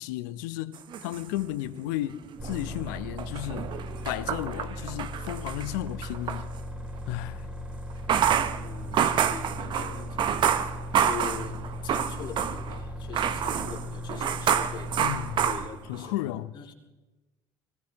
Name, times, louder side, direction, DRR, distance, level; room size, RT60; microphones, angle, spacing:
voice 1, 0.0-3.7 4.0-6.5 7.1-7.5 15.0-15.5 15.9-16.5, left 15 dB, 75° left, 0.6 m, -33 dB
sound 1, 0.7-2.0 2.3-6.5 7.9-12.8 13.1-16.1, right 8 dB, 50° right, 0.9 m, -28 dB
sound 2, 2.4-15.6, equal, 10° right, 2.8 m, -38 dB
voice 2, 8.6-10.3 10.6-10.7 11.0-15.1 15.5-16.7, left 6 dB, 50° left, 2.7 m, -42 dB
24.5 x 18.0 x 2.9 m
hypercardioid pair, 55°, 10 cm